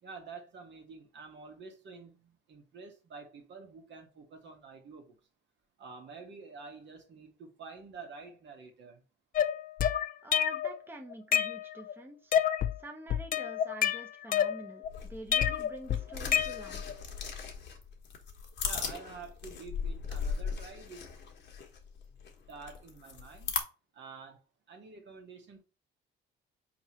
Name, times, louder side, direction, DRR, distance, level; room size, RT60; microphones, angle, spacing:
voice 1, 0.0-5.2 5.8-9.0 18.6-21.1 22.5-23.6 23.9-24.4 24.7-25.6, right 4 dB, 65° right, 1.4 m, -48 dB
Cleaning as Anger Management Beat, 9.3-10.8 11.1-11.9 12.3-12.8 13.1-14.9 15.3-16.9, left 9 dB, 45° left, 0.4 m, -28 dB
voice 2, 10.2-12.3 12.8-17.0, right 2 dB, 10° right, 0.8 m, -47 dB
sound 1, 14.8-23.6, left 6 dB, 60° left, 1.2 m, -38 dB
4.4 x 3.2 x 3.0 m
cardioid pair, 90°, 20 cm